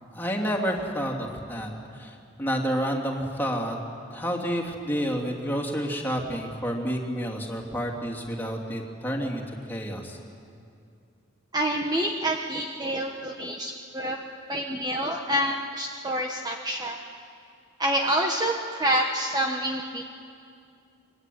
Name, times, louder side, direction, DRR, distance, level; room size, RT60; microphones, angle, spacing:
voice 1, 0.1-3.8 4.1-10.2, equal, 10° left, -1 dB, 3.1 m, -29 dB
voice 2, 11.5-14.2 14.5-17.0 17.8-20.0, right 1 dB, 20° right, 2 dB, 1.3 m, -27 dB
25.5 x 22.5 x 9.5 m, 2.4 s
head